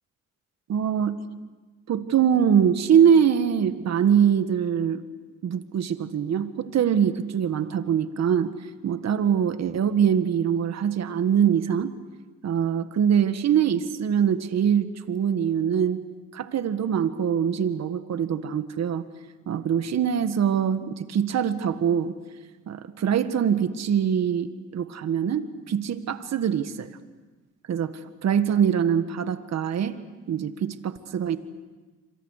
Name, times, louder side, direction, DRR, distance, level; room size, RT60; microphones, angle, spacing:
voice 1, 0.7-1.2 1.9-5.0 5.4-8.5 8.8-11.9 12.4-16.0 16.3-19.0 19.5-22.1 22.7-26.9 27.7-27.9 28.2-30.0 30.3-31.4, right 8 dB, 60° right, 10 dB, 1.7 m, -23 dB
27.5 x 26.0 x 6.6 m, 1.3 s
cardioid pair, 90°, 30 cm